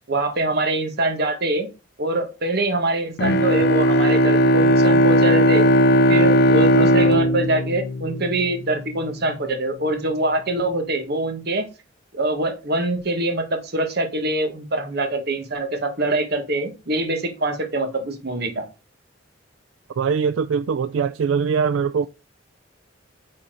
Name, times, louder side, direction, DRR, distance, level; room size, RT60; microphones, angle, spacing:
voice 1, 0.1-1.7 2.0-5.7 6.1-11.6 12.1-18.6, right 2 dB, 55° right, 1.6 m, -24 dB
Bowed string instrument, 3.2-8.7, equal, 55° left, 0.6 m, -17 dB
voice 2, 20.0-22.1, right 6 dB, 80° right, 0.4 m, -22 dB
8.8 x 4.4 x 3.9 m
head